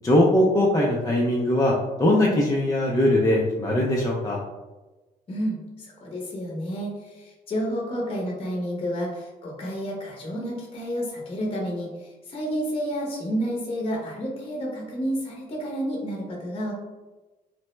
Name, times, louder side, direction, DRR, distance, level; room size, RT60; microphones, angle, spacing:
voice 1, 0.0-4.4, left 1 dB, 20° left, -4 dB, 0.4 m, -21 dB
voice 2, 5.3-16.7, equal, 35° left, -2 dB, 0.8 m, -30 dB
3.3 x 2.0 x 3.1 m, 1.1 s
cardioid pair, 110°, 16 cm